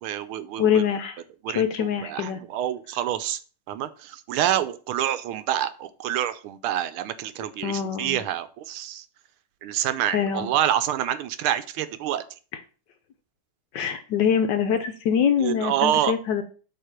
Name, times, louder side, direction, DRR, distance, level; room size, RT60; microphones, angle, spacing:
voice 1, 0.0-0.8 1.4-3.4 3.7-9.1 9.6-12.2 15.4-16.1, right 11 dB, 90° right, 13 dB, 1.5 m, -27 dB
voice 2, 0.6-1.2 1.5-2.4 7.6-8.2 10.1-10.5 13.7-16.4, left 8 dB, 70° left, 8 dB, 1.1 m, -24 dB
7.4 x 3.2 x 5.7 m, 0.38 s
omnidirectional pair, 2.3 m